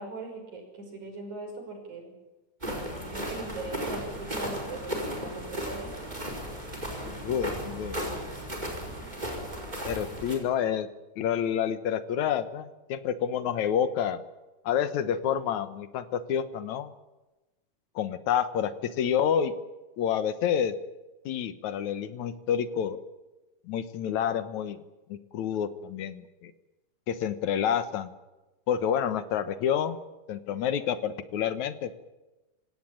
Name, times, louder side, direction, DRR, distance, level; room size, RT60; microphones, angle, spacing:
voice 1, 0.0-2.1 3.1-5.9, right 3 dB, 80° right, 3 dB, 7.2 m, -40 dB
sound 1, 2.6-10.4, equal, 15° right, 5.2 m, -35 dB
voice 2, 7.0-8.0 9.8-10.9 11.2-14.2 14.6-16.9 18.0-19.5 20.0-20.8 21.3-23.0 23.7-24.8 25.1-26.5 27.1-28.1 28.7-30.0 30.3-31.9, left 8 dB, 75° left, 12 dB, 2.6 m, -28 dB
25.5 x 17.0 x 8.8 m, 1.1 s
omnidirectional pair, 3.3 m